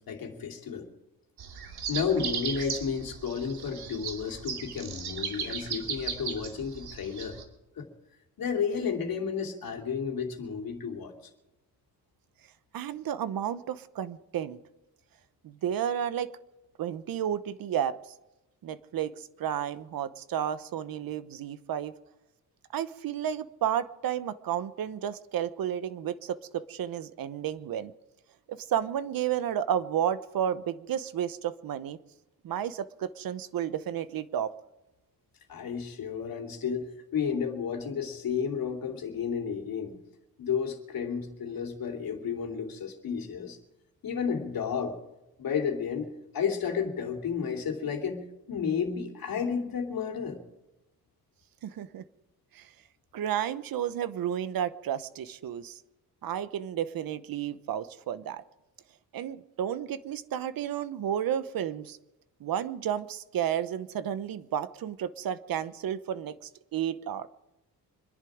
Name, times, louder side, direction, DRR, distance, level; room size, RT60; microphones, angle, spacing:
voice 1, 0.1-0.9 1.9-7.4 7.8-7.9 8.4-11.1 35.5-40.0 40.4-43.6 44.0-45.0 45.4-46.1 46.3-50.4, left 6 dB, 65° left, 3 dB, 2.9 m, -32 dB
sound 1, 1.4-7.4, right 7 dB, 85° right, 2.6 m, -37 dB
voice 2, 12.7-14.6 15.4-16.3 16.8-17.9 18.6-21.9 22.7-27.9 28.5-32.0 32.4-34.5 51.6-52.0 52.5-52.7 53.1-55.8 56.2-58.4 59.1-62.0 62.4-67.3, right 9 dB, 65° right, 14 dB, 0.9 m, -32 dB
25.5 x 11.0 x 5.0 m, 0.97 s
cardioid pair, 140°, 37 cm